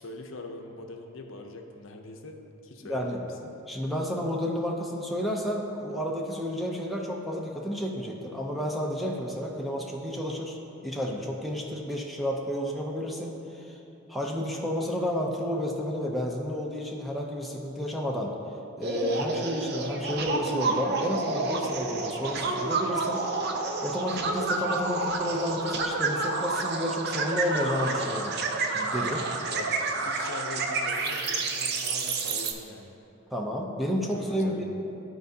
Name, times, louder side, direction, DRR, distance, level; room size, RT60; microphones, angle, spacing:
voice 1, 0.0-3.5 29.5-32.9 34.1-34.6, left 2 dB, 65° left, 3 dB, 0.6 m, -42 dB
voice 2, 2.8-3.2 3.7-13.8 14.1-18.3 18.8-23.3 23.8-28.4 28.7-29.3 33.3-34.6, equal, ahead, -1 dB, 0.5 m, -31 dB
sound 1, 18.8-32.5, right 3 dB, 50° right, 0.5 m, -29 dB
12.0 x 4.5 x 2.7 m, 3.0 s
head